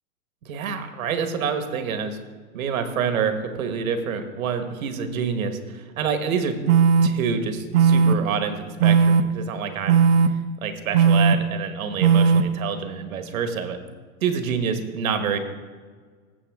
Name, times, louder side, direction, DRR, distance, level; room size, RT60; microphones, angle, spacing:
voice 1, 0.4-2.2 2.5-6.6 7.0-10.0 10.3-10.4 10.6-13.8 14.2-15.4, right 6 dB, 70° right, 7 dB, 1.4 m, -27 dB
sound 1, 6.7-7.1 7.7-8.1 8.8-9.2 9.9-10.3 10.9-11.3 12.0-12.4, right 6 dB, 45° right, 0.5 m, -16 dB
15.5 x 7.0 x 3.5 m, 1.5 s
supercardioid pair, 165°, 43 cm